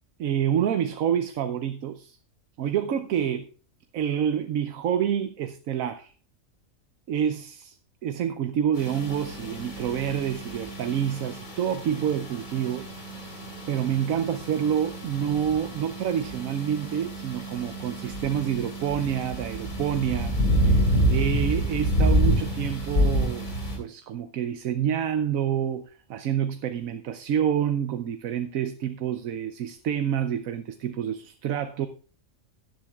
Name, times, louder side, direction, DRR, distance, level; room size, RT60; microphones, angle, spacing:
voice 1, 0.2-2.2 2.6-3.5 3.9-6.1 7.1-7.8 8.0-12.9 13.7-20.4 20.6-23.5 23.7-31.9, right 9 dB, 90° right, 1.1 m, -28 dB
sound 1, 8.7-23.8, equal, 80° left, 4.0 m, -28 dB
16.5 x 10.5 x 2.3 m
omnidirectional pair, 1.4 m